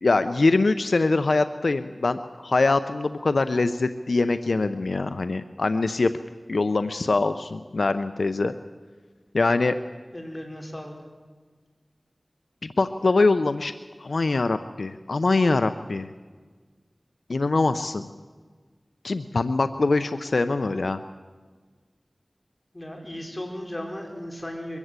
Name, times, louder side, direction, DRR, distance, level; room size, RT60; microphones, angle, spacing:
voice 1, 0.0-6.1 6.5-8.5 9.3-9.8 12.6-13.7 14.0-16.1 17.3-18.1 19.0-21.0, left 3 dB, 80° left, 10 dB, 0.6 m, -23 dB
voice 2, 10.1-10.9 22.7-24.8, left 1 dB, 25° left, 1 dB, 4.9 m, -36 dB
23.0 x 15.5 x 8.2 m, 1.5 s
wide cardioid pair, 55°, 0 cm